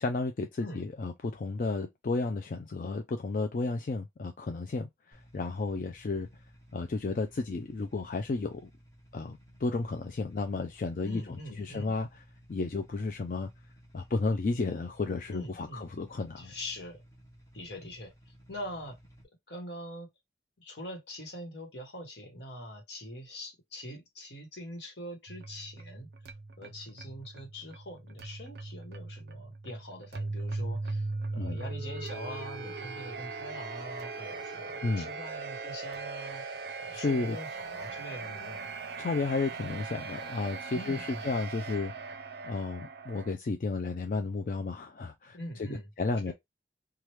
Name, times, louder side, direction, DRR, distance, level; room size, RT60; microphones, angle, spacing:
voice 1, 0.0-6.3 6.7-8.7 9.1-12.2 12.5-13.5 13.9-16.5 31.3-31.6 34.8-35.1 36.9-37.4 39.0-41.9 42.4-45.7 46.0-46.3, left 3 dB, 45° left, 0.3 m, -32 dB
sound 1, 5.1-19.2, equal, 20° left, 0.9 m, -57 dB
voice 2, 11.0-11.9 15.3-15.9 16.4-17.0 17.5-18.1 18.5-19.0 19.5-20.1 20.6-26.1 26.6-31.1 31.3-36.4 36.8-38.7 40.7-41.3 45.3-45.9 46.3-46.4, equal, 75° left, 1.2 m, -43 dB
sound 2, 25.3-43.3, right 3 dB, 65° right, 0.4 m, -39 dB
3.2 x 2.3 x 3.0 m
head